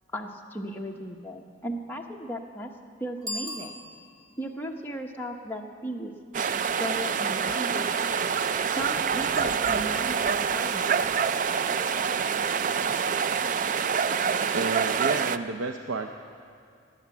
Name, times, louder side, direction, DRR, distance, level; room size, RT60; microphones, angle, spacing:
voice 1, 0.1-2.7 3.0-3.7 4.4-6.1 6.8-8.0 8.7-10.9, equal, 10° left, 0 dB, 0.9 m, -36 dB
Bicycle bell, 3.2-4.4, left 1 dB, 20° right, 2.1 m, -37 dB
sound 1, 6.3-15.4, right 6 dB, 40° right, 0.3 m, -26 dB
voice 2, 14.5-16.2, right 3 dB, 85° right, 5 dB, 0.6 m, -31 dB
20.0 x 8.6 x 7.2 m, 2.3 s
head